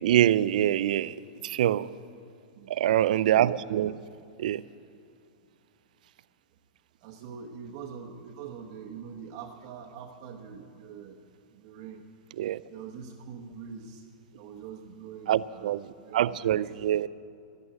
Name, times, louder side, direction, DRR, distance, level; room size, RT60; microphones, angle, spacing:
voice 1, 0.0-1.2 1.4-1.9 2.7-3.9 4.4-4.6 12.4-12.6 15.3-17.1, right 12 dB, 65° right, 17 dB, 0.4 m, -25 dB
voice 2, 3.5-3.9 7.0-11.2 11.5-12.0 12.7-14.1 14.4-16.6, right 6 dB, 40° right, -1 dB, 1.0 m, -44 dB
12.5 x 8.9 x 9.4 m, 2.5 s
supercardioid pair, 160°, 5 cm